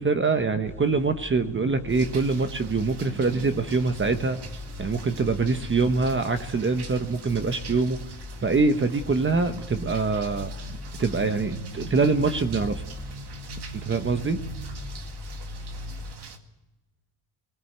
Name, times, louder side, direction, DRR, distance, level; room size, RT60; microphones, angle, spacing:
voice 1, 0.0-4.4 4.8-8.0 8.4-12.8 13.8-14.4, right 4 dB, 25° right, 8 dB, 1.0 m, -24 dB
sound 1, 0.6-16.1, left 3 dB, 5° left, 2.3 m, -40 dB
sound 2, 1.9-16.4, right 4 dB, 55° right, 2.2 m, -41 dB
22.5 x 17.5 x 8.0 m, 1.0 s
cardioid pair, 135°, 47 cm